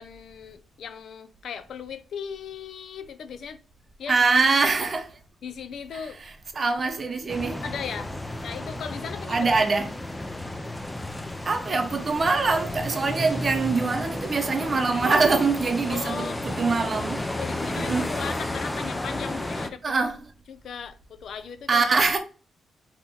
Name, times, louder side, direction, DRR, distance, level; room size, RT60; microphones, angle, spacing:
voice 1, 0.0-3.6 4.0-4.2 5.4-6.2 7.6-8.1 8.4-9.5 15.9-16.4 17.4-19.8 20.5-21.9, left 7 dB, 65° left, 0.5 m, -37 dB
voice 2, 4.1-5.1 6.5-7.6 9.3-9.9 11.5-17.2 17.8-18.1 19.8-20.2 21.7-22.2, right 4 dB, 35° right, 0.7 m, -23 dB
sound 1, 7.3-19.7, left 1 dB, 10° left, 0.4 m, -32 dB
4.1 x 2.9 x 3.8 m
wide cardioid pair, 140°, 0 cm